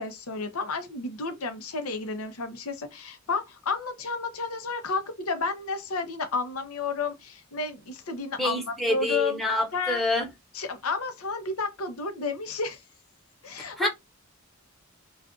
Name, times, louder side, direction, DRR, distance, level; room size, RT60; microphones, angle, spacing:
voice 1, 0.0-9.4 9.7-10.0 10.5-12.8 13.4-13.9, left 4 dB, 80° left, 0.7 m, -31 dB
voice 2, 8.4-10.3 13.8-13.9, left 1 dB, ahead, 0.8 m, -26 dB
2.4 x 2.4 x 3.7 m
head